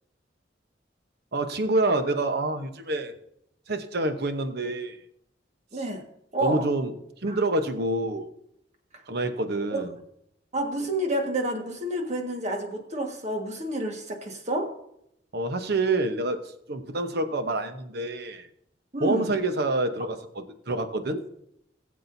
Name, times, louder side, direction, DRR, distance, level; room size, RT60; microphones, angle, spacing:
voice 1, 1.3-3.1 3.7-5.0 6.4-6.9 7.2-8.3 9.1-9.9 15.3-18.5 19.0-21.2, right 2 dB, 60° right, 8 dB, 1.0 m, -27 dB
voice 2, 5.7-6.0 6.3-6.7 7.3-7.4 8.9-9.0 9.7-9.8 10.5-14.7 18.9-19.3, right 1 dB, 40° right, 3 dB, 1.7 m, -29 dB
19.5 x 7.6 x 2.7 m, 0.75 s
head